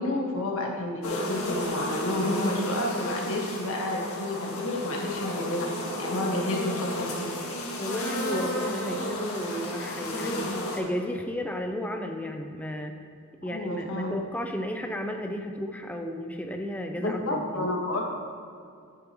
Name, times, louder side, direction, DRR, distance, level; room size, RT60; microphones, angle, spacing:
voice 1, 0.0-5.7 6.0-7.3 13.5-14.1 17.0-18.0, left 1 dB, 65° left, -1 dB, 1.6 m, -30 dB
sound 1, 1.0-10.8, left 1 dB, 85° left, 1.7 m, -32 dB
voice 2, 7.8-12.9 13.4-17.6, equal, 5° left, 4 dB, 0.5 m, -33 dB
10.5 x 9.2 x 3.0 m, 2.4 s
head